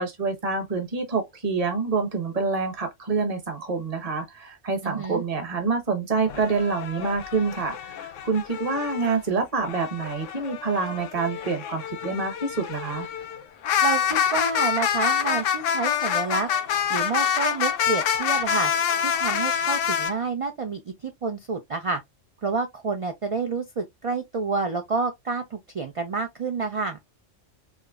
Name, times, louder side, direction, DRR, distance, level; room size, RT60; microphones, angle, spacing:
voice 1, 0.0-13.1, right 4 dB, 30° right, 1.0 m, -27 dB
voice 2, 4.8-5.2 13.8-16.5 16.9-18.7 19.0-22.0 22.4-27.0, right 4 dB, 55° right, 0.3 m, -29 dB
sound 1, 6.3-9.2 9.6-20.1, left 8 dB, 75° left, 0.9 m, -27 dB
5.0 x 2.0 x 2.4 m
omnidirectional pair, 1.3 m